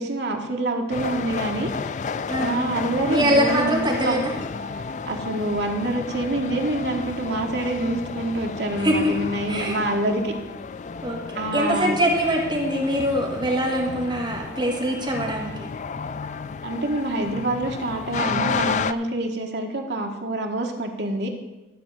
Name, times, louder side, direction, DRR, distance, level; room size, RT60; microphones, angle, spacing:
voice 1, 0.0-1.7 2.4-4.2 5.1-10.3 11.3-11.9 16.6-21.3, right 2 dB, 65° right, 2 dB, 1.6 m, -26 dB
sound 1, 0.9-18.9, left 5 dB, 40° left, 0.3 m, -32 dB
voice 2, 3.1-4.3 8.8-9.1 9.5-9.8 11.0-15.7, equal, 25° right, -2 dB, 1.9 m, -23 dB
13.0 x 4.3 x 8.1 m, 1.1 s
head